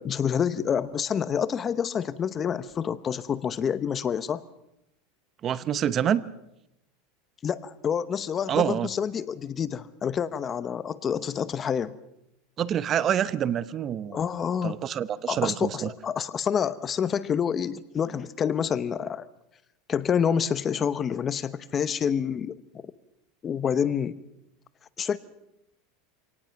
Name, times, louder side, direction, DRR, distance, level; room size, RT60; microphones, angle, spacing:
voice 1, 0.0-4.4 7.4-12.0 14.1-14.8 15.3-19.3 19.9-22.5 23.4-24.2 25.0-25.2, left 7 dB, 30° left, 15 dB, 0.9 m, -28 dB
voice 2, 5.4-6.2 8.5-8.9 12.6-14.2 14.6-15.9, right 9 dB, 35° right, 16 dB, 0.8 m, -26 dB
26.5 x 18.5 x 5.9 m, 0.84 s
supercardioid pair, 125°, 0 cm